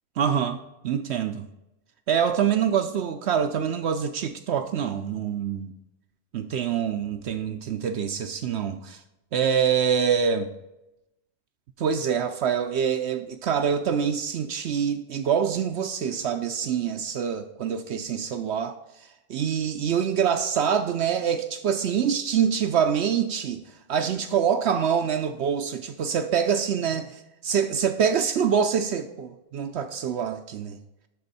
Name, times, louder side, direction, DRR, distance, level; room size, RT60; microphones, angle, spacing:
voice 1, 0.2-1.5 2.1-5.7 6.3-9.0 9.3-10.5 11.8-18.8 19.3-27.1 27.4-30.8, right 7 dB, 65° right, 0.7 m, -25 dB
11.0 x 4.3 x 4.1 m
omnidirectional pair, 1.5 m